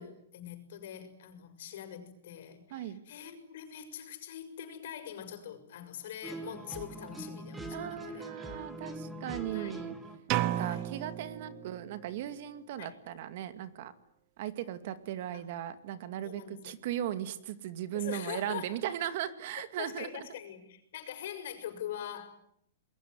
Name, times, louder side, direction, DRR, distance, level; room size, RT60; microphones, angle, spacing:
voice 1, 0.0-8.3 9.5-9.8 10.5-10.9 12.8-13.0 15.3-15.4 16.2-16.7 17.9-18.7 19.8-22.4, left 10 dB, 60° left, 8 dB, 6.6 m, -43 dB
sound 1, 6.2-10.2, right 2 dB, 10° right, 2.5 m, -42 dB
voice 2, 7.7-10.0 10.4-13.9 14.4-20.3, right 11 dB, 50° right, 11 dB, 2.3 m, -37 dB
sound 2, 10.3-12.2, right 13 dB, 35° right, 1.0 m, -33 dB
28.0 x 21.5 x 9.6 m, 0.71 s
hypercardioid pair, 155°, 0 cm